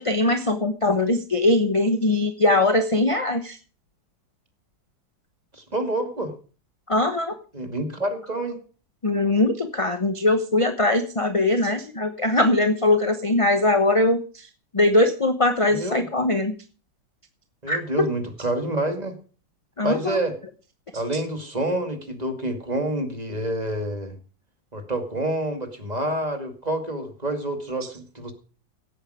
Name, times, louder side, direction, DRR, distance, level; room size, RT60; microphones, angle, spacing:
voice 1, 0.0-3.6 6.9-7.4 9.0-14.5 14.7-16.5 17.7-17.8 19.8-20.2, left 2 dB, 30° left, 8 dB, 0.6 m, -21 dB
voice 2, 5.5-6.3 7.5-8.6 15.7-16.0 17.6-19.1 19.8-20.3 20.9-24.2 24.7-28.3, right 1 dB, 20° right, 6 dB, 2.3 m, -28 dB
16.5 x 8.9 x 4.9 m, 0.37 s
omnidirectional pair, 2.1 m